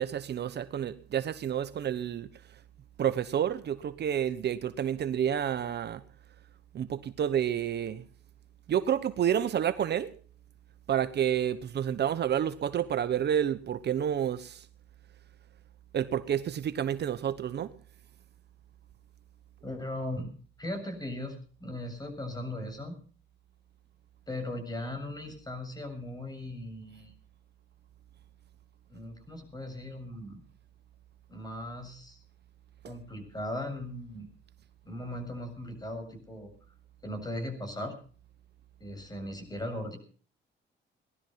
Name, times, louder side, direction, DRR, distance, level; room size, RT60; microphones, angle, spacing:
voice 1, 0.0-2.3 3.0-6.0 6.7-8.0 8.7-10.1 10.9-14.6 15.9-17.7 32.8-32.9, right 9 dB, 60° right, 1.1 m, -29 dB
voice 2, 19.6-20.3 20.6-23.0 24.3-27.1 28.9-30.4 31.3-32.2 32.9-34.3 34.9-36.5 37.0-38.0 38.8-40.0, left 1 dB, 20° left, 7.1 m, -38 dB
19.5 x 12.0 x 5.7 m
cardioid pair, 90°, 20 cm